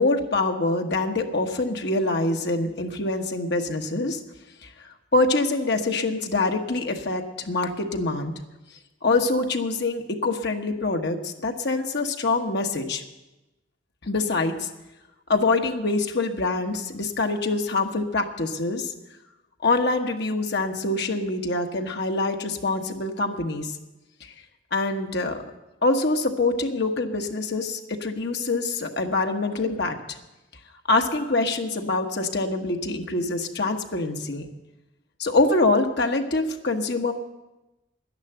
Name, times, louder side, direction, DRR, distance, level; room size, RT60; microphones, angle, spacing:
voice 1, 0.0-4.2 4.6-4.7 5.1-8.3 9.0-13.0 14.0-14.7 15.3-18.9 19.6-23.8 24.2-24.3 24.7-25.4 25.8-30.0 30.9-34.5 35.2-37.1, left 3 dB, 60° left, 4 dB, 1.3 m, -25 dB
11.5 x 10.5 x 7.9 m, 1.0 s
head